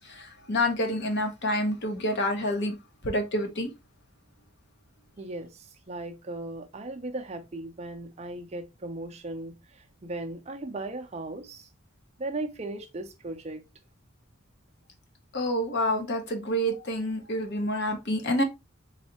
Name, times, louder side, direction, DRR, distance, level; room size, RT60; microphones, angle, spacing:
voice 1, 0.0-2.7 3.0-3.7 15.3-18.4, left 1 dB, 55° left, 0.9 m, -28 dB
voice 2, 5.2-11.7 12.2-13.6, right 2 dB, 30° right, 0.5 m, -37 dB
4.0 x 3.2 x 2.8 m
head